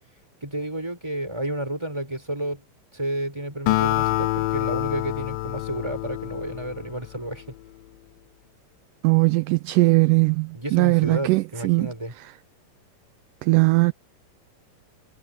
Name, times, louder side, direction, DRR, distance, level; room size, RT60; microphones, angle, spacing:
voice 1, 0.4-2.6 2.9-7.4 10.5-12.1, right 1 dB, 5° right, 7.0 m, -31 dB
Acoustic guitar, 3.7-7.3, left 18 dB, 85° left, 2.4 m, -26 dB
voice 2, 9.0-11.9 13.4-13.9, right 25 dB, 80° right, 2.1 m, -19 dB
omnidirectional pair, 4.0 m